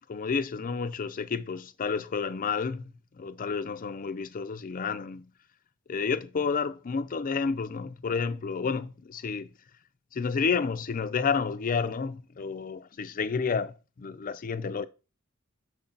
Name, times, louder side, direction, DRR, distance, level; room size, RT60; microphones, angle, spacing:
voice 1, 0.0-5.3 5.9-9.5 10.1-14.9, left 5 dB, 40° left, 0.4 m, -30 dB
7.1 x 4.7 x 3.9 m
head